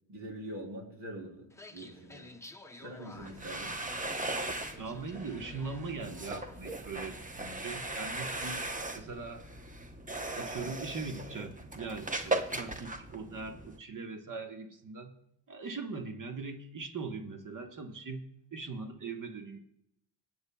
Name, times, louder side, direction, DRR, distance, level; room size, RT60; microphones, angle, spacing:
voice 1, 0.1-2.3 2.8-3.7, right 1 dB, 70° right, -1 dB, 3.8 m, -44 dB
sound 1, 1.5-6.8, left 2 dB, 5° left, 0.9 m, -53 dB
sound 2, 3.1-13.8, right 2 dB, 15° right, 1.0 m, -38 dB
voice 2, 4.8-8.7 8.9-9.4 10.4-15.2 15.5-19.6, right 4 dB, 40° right, 5 dB, 1.4 m, -41 dB
20.0 x 8.8 x 2.3 m, 0.74 s
supercardioid pair, 60°, 46 cm